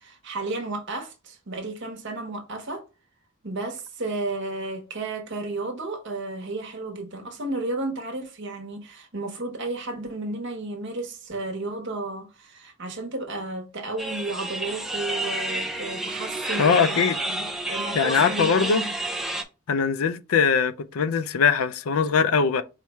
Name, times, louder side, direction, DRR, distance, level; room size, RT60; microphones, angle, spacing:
voice 1, 0.0-2.8 3.4-17.4 17.7-18.9, right 2 dB, 55° right, 1.0 m, -33 dB
sound 1, 14.0-19.4, right 1 dB, ahead, 0.4 m, -30 dB
voice 2, 16.6-17.2 17.9-18.8 19.7-22.6, left 6 dB, 75° left, 0.4 m, -21 dB
4.5 x 2.3 x 4.2 m
head